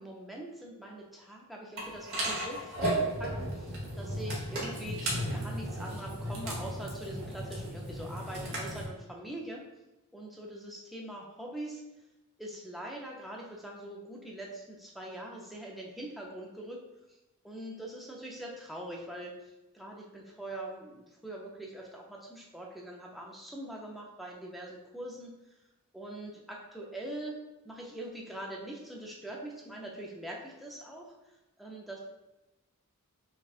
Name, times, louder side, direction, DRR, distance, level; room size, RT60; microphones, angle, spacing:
voice 1, 0.0-9.6 10.1-11.8 12.4-16.8 17.4-25.4 25.9-27.4 27.6-31.1 31.6-32.0, right 1 dB, ahead, -2 dB, 0.5 m, -43 dB
sound 1, 1.8-8.8, right 1 dB, 60° right, 1.1 m, -35 dB
5.9 x 2.3 x 2.4 m, 1.0 s
head